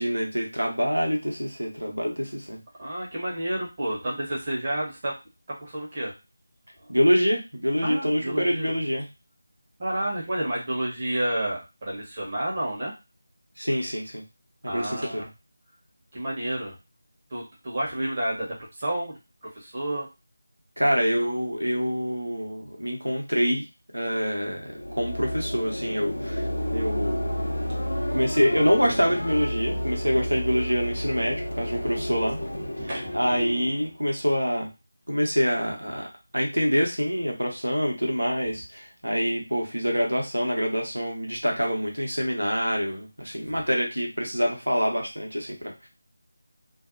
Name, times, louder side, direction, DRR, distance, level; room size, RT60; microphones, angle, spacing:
voice 1, 0.0-2.6 6.9-9.1 13.6-14.2 14.6-15.3 20.8-23.6 23.9-27.2 28.1-32.4 33.1-34.7 35.1-36.1 36.3-45.9, equal, 90° right, 0 dB, 0.9 m, -26 dB
voice 2, 2.8-5.2 5.5-6.1 6.8-6.9 7.8-8.7 9.8-12.9 14.6-15.3 16.1-16.7 17.3-20.1 30.1-30.2 31.6-31.9 32.8-33.2 43.5-43.6, right 1 dB, 30° right, -4 dB, 0.9 m, -30 dB
sound 1, 24.6-33.9, equal, 75° left, 0.6 m, -31 dB
2.5 x 2.0 x 2.5 m, 0.26 s
figure-of-eight pair, 165°, 0 cm